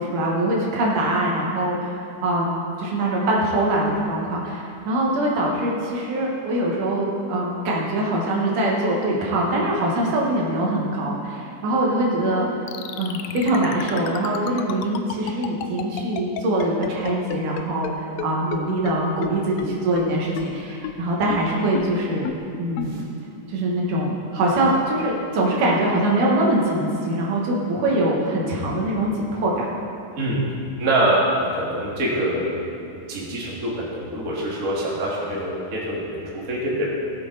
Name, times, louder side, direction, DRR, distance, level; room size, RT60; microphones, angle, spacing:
voice 1, 0.0-12.5 13.0-22.3 22.6-23.0 23.5-29.7, right 1 dB, 75° right, -3 dB, 3.0 m, -23 dB
sound 1, 12.7-17.9 18.2-18.3 18.5-18.6 18.9-19.0 19.2-19.3 19.6-19.7 20.0-20.1 20.4-20.5 20.8-20.9 21.3-21.4 21.8-21.9 22.3-22.4 22.8-22.9, left 10 dB, 85° left, 1.5 m, -30 dB
voice 2, 30.8-32.5 32.9-36.9, right 1 dB, 30° right, -5 dB, 2.1 m, -24 dB
18.0 x 7.9 x 4.0 m, 2.6 s
omnidirectional pair, 3.7 m